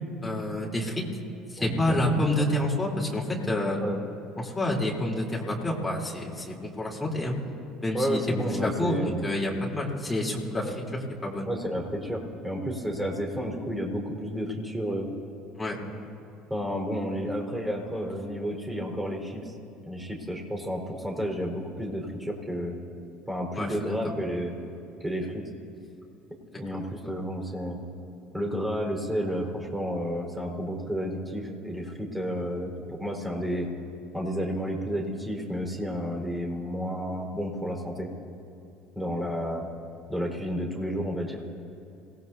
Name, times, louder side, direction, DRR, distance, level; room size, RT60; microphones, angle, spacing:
voice 1, 0.2-1.0 1.5-3.8 4.4-7.4 7.8-8.2 8.6-11.5 15.6-15.8 23.5-23.7, left 1 dB, 10° left, -4 dB, 3.7 m, -28 dB
voice 2, 1.6-2.5 3.8-4.0 7.9-9.3 10.6-10.8 11.4-15.1 16.5-19.5 19.9-22.8 23.3-24.6 25.0-25.4 26.6-27.8 28.3-33.7 34.1-38.1 38.9-39.6 40.1-41.4, equal, 10° right, -1 dB, 4.7 m, -31 dB
26.5 x 18.5 x 2.8 m, 2.7 s
figure-of-eight pair, 65°, 0 cm